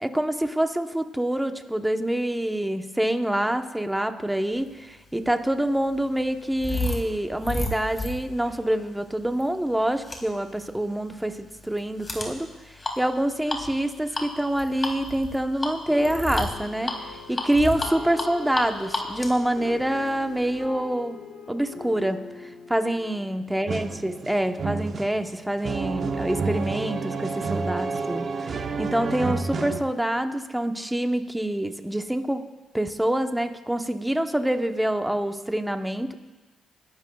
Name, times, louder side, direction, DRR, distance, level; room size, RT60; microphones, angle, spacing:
voice 1, 0.0-21.2 21.5-32.4 32.7-36.1, right 1 dB, 5° right, 7 dB, 0.9 m, -26 dB
sound 1, 5.0-20.6, left 2 dB, 25° left, 2.4 m, -34 dB
sound 2, 15.9-24.4, left 4 dB, 55° left, 4.3 m, -42 dB
sound 3, 23.7-29.8, right 4 dB, 45° right, 0.9 m, -30 dB
26.5 x 12.0 x 2.3 m, 1.1 s
cardioid pair, 90°, 0 cm